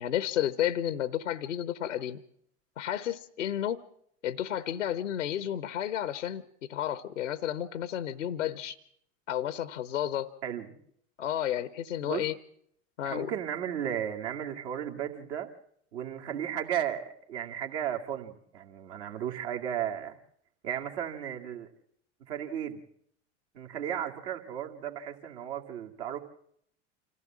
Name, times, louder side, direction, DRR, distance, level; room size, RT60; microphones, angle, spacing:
voice 1, 0.0-2.2 2.8-3.8 4.2-6.4 6.7-8.8 9.3-10.3 11.2-12.4 13.0-13.3, left 11 dB, 85° left, 16 dB, 0.8 m, -31 dB
voice 2, 10.4-10.8 12.0-12.2 13.0-15.5 15.9-20.2 20.6-21.7 22.3-22.8 23.5-26.2, right 10 dB, 65° right, 3 dB, 2.3 m, -34 dB
26.0 x 15.0 x 7.4 m, 0.69 s
hypercardioid pair, 75°, 36 cm